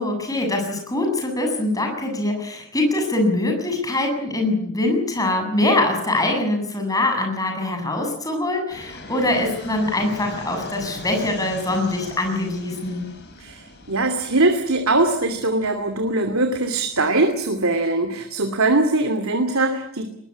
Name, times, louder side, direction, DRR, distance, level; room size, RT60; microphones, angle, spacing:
voice 1, 0.0-13.1, left 2 dB, 15° left, 3 dB, 7.7 m, -23 dB
Fixed-wing aircraft airplane, 8.7-17.7, left 2 dB, 50° left, 6.6 m, -40 dB
voice 2, 13.4-20.1, right 2 dB, 70° right, 6 dB, 2.8 m, -21 dB
22.0 x 21.0 x 8.6 m, 0.72 s
head